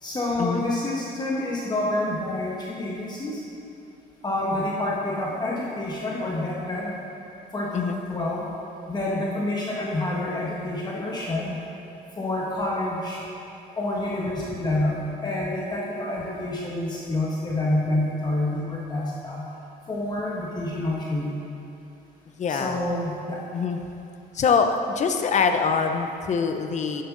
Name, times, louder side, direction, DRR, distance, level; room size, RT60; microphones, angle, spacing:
voice 1, 0.0-3.4 4.2-7.0 7.5-8.5 8.9-11.6 12.2-13.2 13.7-19.5 19.9-21.3 22.5-23.4, left 1 dB, 25° left, -4 dB, 1.4 m, -28 dB
voice 2, 22.4-22.8 23.5-23.8 24.3-27.0, left 5 dB, 45° left, 6 dB, 0.9 m, -24 dB
11.0 x 11.0 x 4.0 m, 2.8 s
cardioid pair, 110°, 17 cm